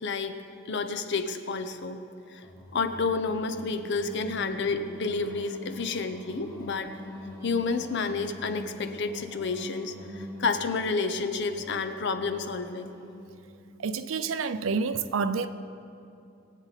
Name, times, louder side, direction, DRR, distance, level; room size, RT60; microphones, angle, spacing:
voice 1, 0.0-2.0 2.3-2.4 2.7-6.9 7.4-12.9, left 4 dB, 60° left, 8 dB, 0.7 m, -30 dB
Singing, 2.4-13.6, left 1 dB, 20° left, 1.9 m, -44 dB
voice 2, 13.8-15.5, right 5 dB, 75° right, 12 dB, 0.5 m, -28 dB
20.0 x 8.3 x 4.1 m, 2.6 s
head